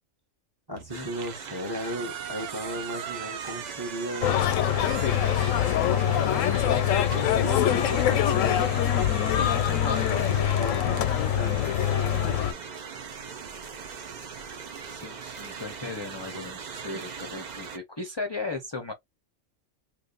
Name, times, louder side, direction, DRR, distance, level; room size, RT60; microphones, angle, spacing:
voice 1, 0.7-4.4 5.8-8.8 10.1-12.6 16.3-16.4, equal, 20° right, 0.9 m, -36 dB
sound 1, 0.8-11.1, right 9 dB, 70° right, 0.9 m, -42 dB
sound 2, 0.9-17.8, right 6 dB, 50° right, 0.5 m, -41 dB
sound 3, 4.2-12.5, left 10 dB, 85° left, 1.0 m, -24 dB
voice 2, 9.3-10.3 14.8-18.9, left 3 dB, 30° left, 0.5 m, -36 dB
2.9 x 2.5 x 3.8 m
omnidirectional pair, 1.3 m